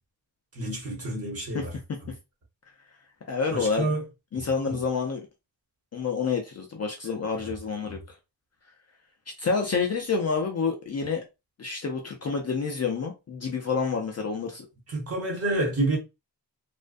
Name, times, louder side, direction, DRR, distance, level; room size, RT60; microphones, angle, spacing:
voice 1, 0.5-1.8 2.0-2.1 3.5-4.0 4.3-4.8 7.4-7.5 7.9-8.0 14.9-16.0, right 2 dB, 35° right, 1.0 m, -29 dB
voice 2, 3.3-3.9 4.3-5.3 5.9-8.0 9.4-11.2 11.6-14.7, left 5 dB, 40° left, 0.4 m, -28 dB
2.4 x 2.2 x 2.4 m
wide cardioid pair, 160°, 44 cm